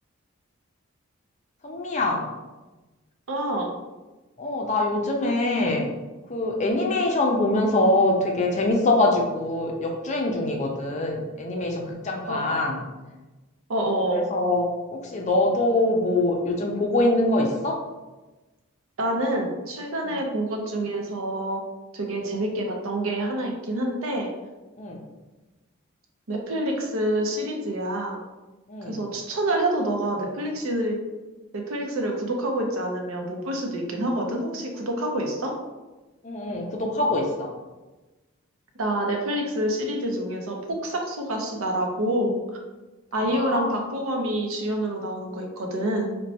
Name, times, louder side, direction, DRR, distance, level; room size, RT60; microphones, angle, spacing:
voice 1, 1.6-2.2 4.4-5.8 6.3-12.8 14.1-14.7 14.9-17.8 20.0-20.1 24.8-25.0 28.7-29.0 36.2-37.5 43.3-43.7, left 2 dB, 35° left, 1 dB, 0.4 m, -24 dB
voice 2, 3.3-3.7 12.3-12.5 13.7-14.3 19.0-21.6 21.9-24.3 26.3-28.2 28.9-31.0 31.5-35.6 38.8-42.4 43.1-46.2, right 1 dB, 75° right, 2 dB, 0.6 m, -27 dB
4.1 x 2.2 x 2.7 m, 1.1 s
head